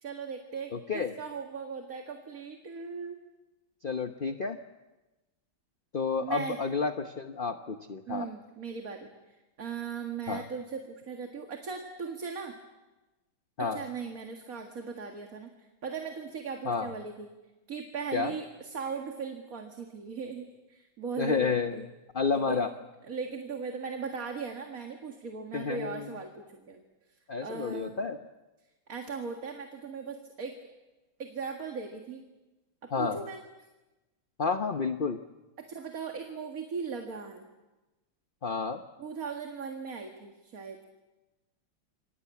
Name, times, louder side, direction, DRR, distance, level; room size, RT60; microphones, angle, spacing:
voice 1, 0.0-3.2 6.2-6.6 8.1-12.6 13.6-17.3 17.7-21.9 22.3-22.6 23.0-26.8 27.4-28.0 28.9-30.5 31.2-32.2 32.8-33.4 35.7-37.5 39.0-40.8, right 5 dB, 45° right, 4 dB, 2.3 m, -38 dB
voice 2, 0.7-1.1 3.8-4.6 5.9-8.3 10.3-10.5 13.6-13.8 16.7-16.9 18.1-18.3 21.2-21.8 22.1-22.7 25.5-26.1 27.3-28.2 32.9-33.2 34.4-35.2 38.4-38.8, left 5 dB, 45° left, 7 dB, 0.7 m, -30 dB
28.0 x 23.0 x 8.5 m, 1.1 s
omnidirectional pair, 2.3 m